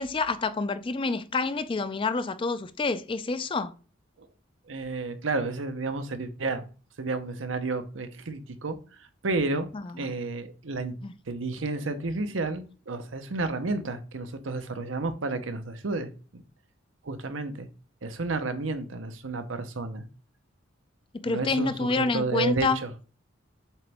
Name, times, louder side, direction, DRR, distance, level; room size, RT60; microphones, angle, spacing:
voice 1, 0.0-3.7 9.7-9.9 11.0-11.1 21.1-22.8, left 3 dB, 25° left, 0.4 m, -28 dB
voice 2, 4.7-6.6 7.0-9.7 10.0-10.9 11.3-16.4 17.0-17.7 18.0-20.1 21.3-22.9, right 3 dB, 85° right, 0.8 m, -31 dB
7.3 x 3.9 x 3.5 m
head